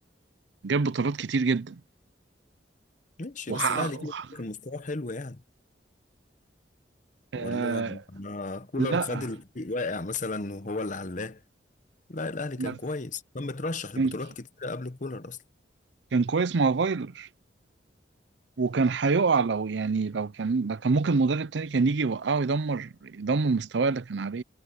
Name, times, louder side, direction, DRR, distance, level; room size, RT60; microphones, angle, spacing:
voice 1, 0.6-1.8 3.5-4.3 7.3-8.0 8.8-9.3 12.6-12.7 14.0-14.1 16.1-17.3 18.6-24.4, right 4 dB, 80° right, 0.6 m, -26 dB
voice 2, 3.2-5.4 7.4-11.4 12.1-15.4, left 3 dB, 45° left, 1.1 m, -34 dB
head